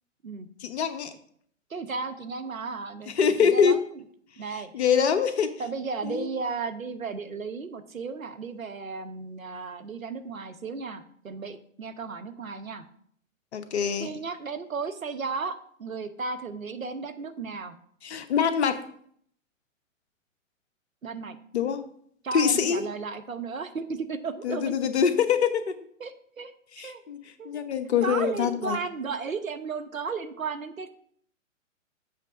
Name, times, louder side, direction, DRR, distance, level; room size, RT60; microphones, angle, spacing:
voice 1, 0.6-1.1 3.2-3.7 4.7-5.5 6.0-6.3 13.5-14.1 18.0-18.8 21.5-21.8 22.3-22.8 24.4-25.7 26.8-27.2 27.4-28.8, left 7 dB, 55° left, 9 dB, 0.9 m, -24 dB
voice 2, 1.7-4.0 4.4-4.7 5.6-12.8 14.0-17.8 21.0-21.4 22.2-24.8 26.0-26.5 26.8-27.0 27.4-27.7 28.0-31.1, right 4 dB, 85° right, 10 dB, 0.9 m, -34 dB
7.6 x 3.3 x 6.1 m, 0.62 s
figure-of-eight pair, 125°, 39 cm